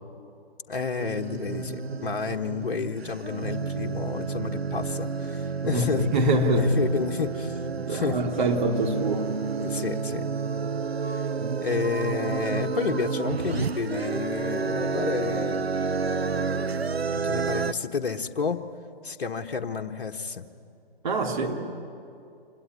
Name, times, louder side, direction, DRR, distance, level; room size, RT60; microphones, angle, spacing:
voice 1, 0.7-6.0 6.5-7.6 7.9-8.2 9.6-10.3 11.6-15.7 17.1-18.6 19.0-20.5, left 5 dB, 60° left, 3 dB, 1.5 m, -30 dB
sound 1, 1.0-17.7, right 5 dB, 85° right, 0.8 m, -30 dB
voice 2, 5.6-6.8 7.9-9.3 21.0-21.6, right 1 dB, 50° right, 0 dB, 3.3 m, -25 dB
27.0 x 22.5 x 9.8 m, 2.6 s
figure-of-eight pair, 135°, 30 cm